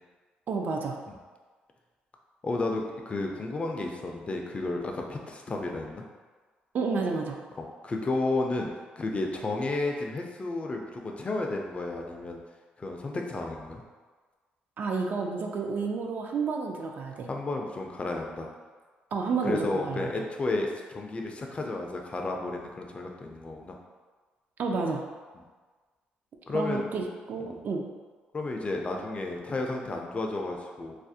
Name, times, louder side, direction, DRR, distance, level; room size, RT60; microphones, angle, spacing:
voice 1, 0.5-1.0 6.7-7.4 14.8-17.3 19.1-20.1 24.6-25.0 26.5-27.8, right 4 dB, 55° right, 2 dB, 0.3 m, -30 dB
voice 2, 2.4-6.0 7.8-8.7 9.0-12.4 12.8-13.8 17.3-18.5 19.4-23.7 26.5-26.8 27.4-27.6 28.3-30.9, left 2 dB, 35° left, 1 dB, 0.4 m, -32 dB
2.4 x 2.0 x 2.6 m, 1.4 s
supercardioid pair, 70°, 4 cm